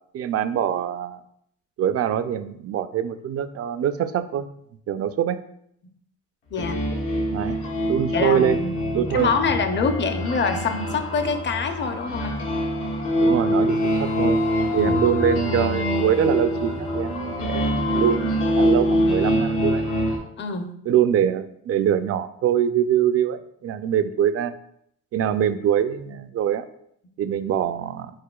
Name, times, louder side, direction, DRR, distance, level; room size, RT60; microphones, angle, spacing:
voice 1, 0.1-1.2 1.8-4.5 4.9-5.4 7.3-7.6 7.9-8.6 8.9-9.3 13.2-14.4 14.7-19.8 20.9-24.5 25.1-26.7 27.2-28.1, right 9 dB, 50° right, 11 dB, 0.4 m, -24 dB
sound 1, 6.6-20.2, equal, 85° left, 1.2 m, -24 dB
voice 2, 8.1-12.4 14.7-15.0 20.4-20.7, left 5 dB, 40° left, 7 dB, 0.6 m, -25 dB
4.7 x 4.1 x 2.3 m, 0.71 s
cardioid pair, 90°, 30 cm